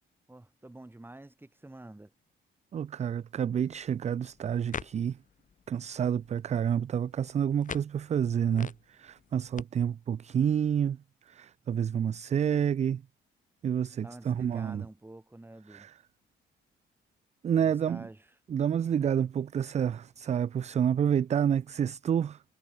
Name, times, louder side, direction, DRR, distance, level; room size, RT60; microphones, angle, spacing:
voice 1, 0.3-2.1 14.0-15.9 17.5-18.3, right 2 dB, 10° right, 2.9 m, -48 dB
voice 2, 2.7-5.2 5.7-13.0 13.6-14.8 15.7-15.9 17.4-18.1 18.5-22.4, right 8 dB, 35° right, 0.4 m, -29 dB
sound 1, 3.5-9.6, left 6 dB, 40° left, 1.6 m, -46 dB
cardioid pair, 90°, 20 cm